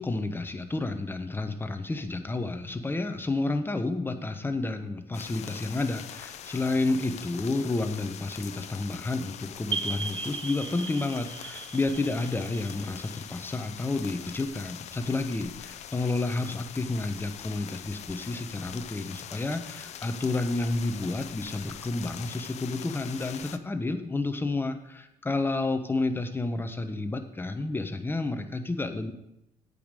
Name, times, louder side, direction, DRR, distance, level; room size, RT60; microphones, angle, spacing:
voice 1, 0.0-29.1, left 2 dB, 15° left, 8 dB, 1.0 m, -30 dB
sound 1, 5.1-23.6, left 10 dB, 60° left, 0.6 m, -43 dB
sound 2, 9.7-14.2, right 5 dB, 40° right, 0.8 m, -37 dB
8.5 x 5.5 x 6.4 m, 0.85 s
supercardioid pair, 75°, 13 cm